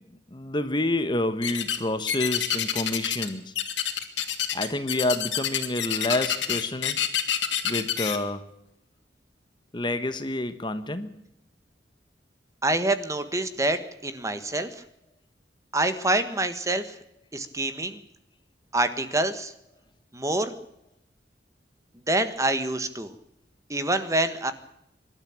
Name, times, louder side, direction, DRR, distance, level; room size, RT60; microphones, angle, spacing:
voice 1, 0.3-3.5 4.5-7.0 7.6-8.5 9.7-11.1, left 1 dB, 25° left, 10 dB, 1.2 m, -28 dB
sound 1, 1.4-1.8 2.1-3.3 3.6-8.2, left 10 dB, 85° left, 2.7 m, -27 dB
voice 2, 12.6-14.7 15.7-16.9 17.3-18.0 18.7-19.5 20.1-20.5 22.1-23.1 23.7-24.5, right 2 dB, 15° right, 10 dB, 1.5 m, -26 dB
25.0 x 12.5 x 8.8 m, 0.79 s
head